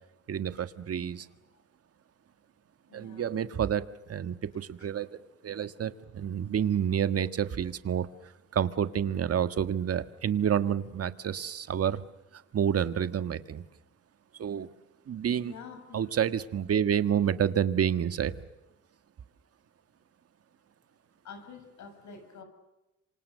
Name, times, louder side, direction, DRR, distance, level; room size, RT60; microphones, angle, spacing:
voice 1, 0.3-1.3 2.9-12.0 12.3-13.6 14.4-14.7 15.1-15.5 15.9-18.3, right 9 dB, 50° right, 11 dB, 1.6 m, -29 dB
voice 2, 2.9-3.3 4.8-4.9 15.4-16.2 21.2-22.4, left 5 dB, 70° left, 7 dB, 7.2 m, -47 dB
26.5 x 26.5 x 6.7 m, 0.99 s
cardioid pair, 90°, 30 cm